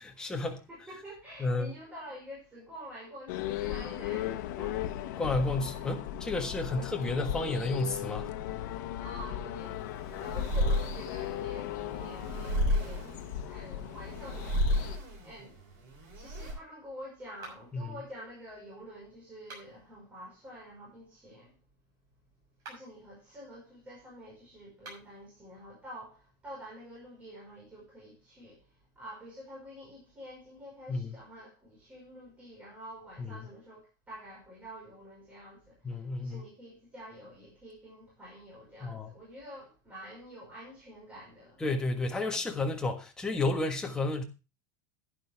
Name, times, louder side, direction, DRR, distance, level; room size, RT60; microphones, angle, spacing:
voice 1, 0.1-0.6 1.4-1.7 5.2-8.3 17.7-17.9 30.9-31.2 33.2-33.3 35.8-36.4 38.8-39.1 41.6-44.2, left 2 dB, 5° left, 1.5 m, -31 dB
voice 2, 0.7-5.3 5.7-5.9 6.6-6.9 8.9-15.6 16.1-21.6 22.6-41.6 42.2-42.3, equal, 15° right, 5.7 m, -48 dB
sound 1, 3.3-15.0, left 12 dB, 70° left, 1.2 m, -37 dB
sound 2, 9.6-16.5, equal, 65° right, 7.8 m, -33 dB
sound 3, 17.4-17.9 19.3-19.9 22.5-23.0 24.7-25.2, right 3 dB, 35° right, 6.5 m, -49 dB
11.0 x 11.0 x 3.6 m
supercardioid pair, 175°, 10 cm